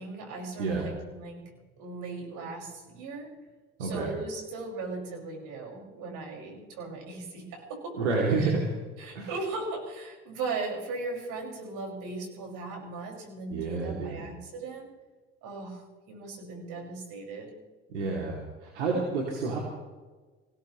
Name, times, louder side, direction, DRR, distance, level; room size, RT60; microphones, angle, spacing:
voice 1, 0.0-1.4 1.8-3.3 3.8-8.0 8.4-8.5 9.0-14.9 15.4-15.8 16.1-17.5, right 3 dB, 60° right, 0 dB, 5.6 m, -38 dB
voice 2, 0.6-0.9 3.8-4.1 7.9-8.7 9.1-9.3 13.5-14.3 17.9-19.6, right 3 dB, 80° right, -1 dB, 2.7 m, -29 dB
24.5 x 17.0 x 3.1 m, 1.3 s
hypercardioid pair, 70°, 35 cm